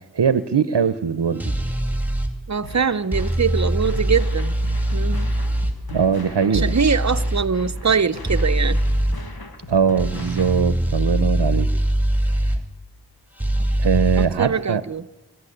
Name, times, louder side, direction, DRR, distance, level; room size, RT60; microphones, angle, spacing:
voice 1, 0.1-1.5 5.9-6.7 9.7-11.7 12.4-12.5 13.8-14.8, right 6 dB, 85° right, 14 dB, 0.8 m, -21 dB
sound 1, 1.4-2.3 3.1-5.7 6.5-7.5 8.3-9.2 10.0-12.6 13.4-14.3, right 1 dB, 5° right, 2.6 m, -22 dB
voice 2, 2.5-4.5 4.9-5.3 6.5-8.8 14.2-15.1, right 6 dB, 45° right, 13 dB, 0.8 m, -22 dB
sound 2, 2.6-10.6, left 1 dB, 60° left, 2.1 m, -39 dB
23.5 x 12.5 x 9.9 m, 1.2 s
wide cardioid pair, 55°, 40 cm